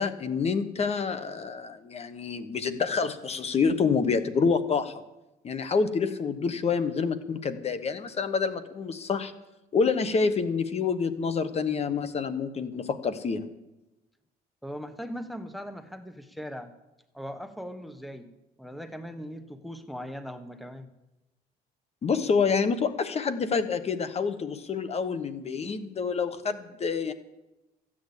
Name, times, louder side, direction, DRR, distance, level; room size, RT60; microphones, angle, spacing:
voice 1, 0.0-5.0 5.4-9.3 9.7-13.4 22.0-27.1, left 5 dB, 40° left, 11 dB, 1.1 m, -27 dB
voice 2, 14.6-16.7 17.1-18.3 18.6-20.9, equal, ahead, 9 dB, 1.1 m, -39 dB
14.5 x 8.6 x 8.3 m, 1.0 s
cardioid pair, 110°, 17 cm